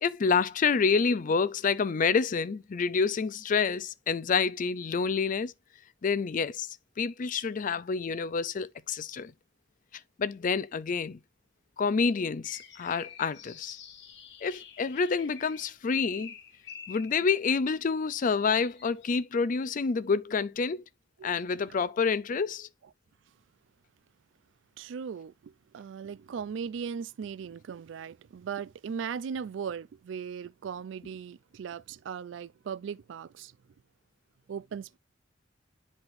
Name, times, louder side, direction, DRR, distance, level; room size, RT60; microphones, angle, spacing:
voice 1, 0.0-5.5 6.0-9.3 10.2-11.2 11.8-13.8 14.4-16.3 16.9-20.8 21.2-22.7, left 5 dB, 45° left, 0.4 m, -28 dB
sound 1, 12.4-17.3 18.1-19.2, left 7 dB, 65° left, 1.3 m, -48 dB
voice 2, 24.8-33.5 34.5-35.0, right 7 dB, 70° right, 0.3 m, -38 dB
9.5 x 4.3 x 2.5 m
head